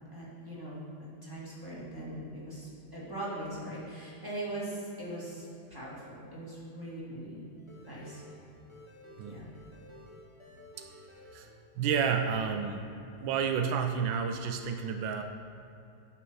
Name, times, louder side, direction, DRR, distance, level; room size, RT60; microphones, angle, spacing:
voice 1, 0.1-7.4 7.8-8.2 9.3-9.5, right 1 dB, 10° right, -7 dB, 2.2 m, -41 dB
sound 1, 7.6-12.9 13.1-14.0, left 1 dB, 20° left, 0.9 m, -54 dB
voice 2, 11.8-12.9 13.2-15.2, right 6 dB, 85° right, 5 dB, 1.4 m, -30 dB
10.5 x 5.8 x 4.8 m, 2.7 s
omnidirectional pair, 2.0 m